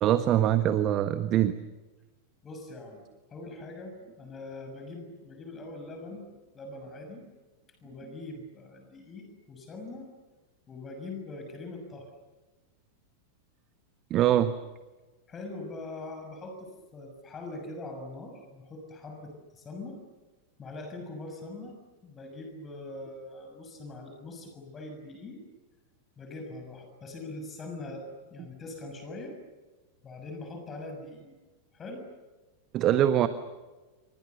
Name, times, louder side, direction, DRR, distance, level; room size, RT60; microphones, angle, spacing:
voice 1, 0.0-1.5 14.1-14.5 32.7-33.3, right 11 dB, 35° right, 11 dB, 1.3 m, -23 dB
voice 2, 2.4-3.0 3.3-6.3 6.5-7.2 7.8-10.1 10.7-12.1 15.3-20.0 20.6-21.8 22.0-25.4 26.2-29.4 30.0-31.3 31.7-32.1 32.8-33.0, left 2 dB, 20° left, 5 dB, 6.4 m, -42 dB
30.0 x 26.0 x 7.0 m, 1.2 s
figure-of-eight pair, 90°, 0 cm